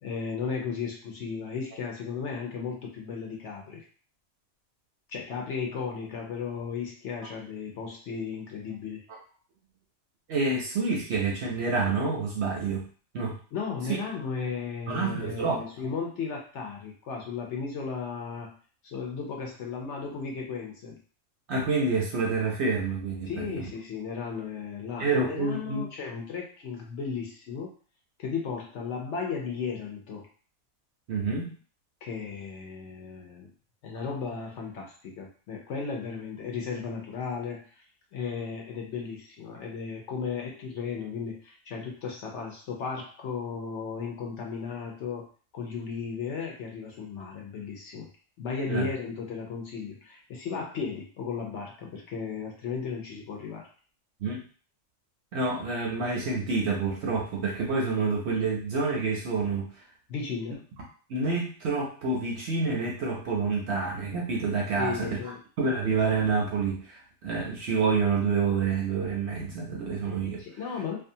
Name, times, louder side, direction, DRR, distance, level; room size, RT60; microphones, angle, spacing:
voice 1, 0.0-3.8 5.1-9.0 13.5-18.5 18.8-21.0 23.3-27.7 28.2-30.3 32.0-33.5 33.8-37.8 38.1-45.2 45.5-48.1 48.4-53.7 60.1-60.6 64.8-65.4 70.4-71.0, left 5 dB, 65° left, 0 dB, 0.8 m, -35 dB
voice 2, 10.3-12.8 13.1-13.4 14.9-15.6 21.5-23.7 25.0-25.9 31.1-31.5 48.7-48.9 54.2-54.4 55.3-59.7 61.1-65.2 65.6-70.4, right 4 dB, 65° right, -1 dB, 0.7 m, -28 dB
2.5 x 2.3 x 2.6 m, 0.40 s
omnidirectional pair, 1.5 m